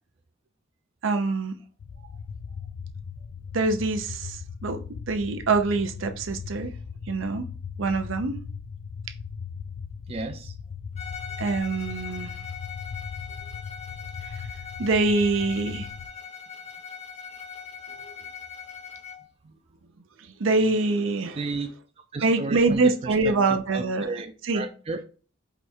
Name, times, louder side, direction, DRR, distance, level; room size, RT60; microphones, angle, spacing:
voice 1, 1.0-1.5 3.5-4.8 5.1-6.7 7.1-7.5 7.8-8.4 11.4-12.3 14.3-14.4 14.8-15.9 18.0-18.1 20.2-21.4 22.2-24.1 24.5-24.7, right 3 dB, 80° right, 0.6 m, -24 dB
sound 1, 1.8-16.1, left 6 dB, 75° left, 0.4 m, -38 dB
voice 2, 10.1-10.5 21.3-21.7 22.1-25.0, right 3 dB, 30° right, 0.4 m, -34 dB
Bowed string instrument, 11.0-19.3, left 7 dB, 35° left, 0.7 m, -41 dB
4.8 x 2.3 x 4.3 m
head